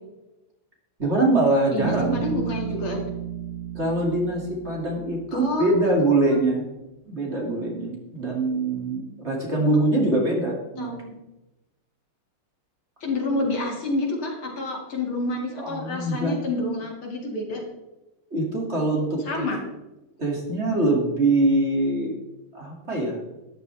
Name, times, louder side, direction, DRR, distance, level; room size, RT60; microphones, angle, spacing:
voice 1, 1.0-2.4 3.7-6.7 7.0-10.9 15.6-16.4 18.3-19.5 20.2-22.2 22.5-23.2, right 2 dB, 30° right, -1 dB, 2.7 m, -23 dB
voice 2, 1.7-3.0 5.3-5.6 10.8-11.1 13.0-17.6 19.3-19.6, left 2 dB, 70° left, 0 dB, 3.3 m, -28 dB
Bass guitar, 1.8-5.9, right 8 dB, 65° right, 1.4 m, -33 dB
13.0 x 11.0 x 3.4 m, 0.97 s
omnidirectional pair, 2.4 m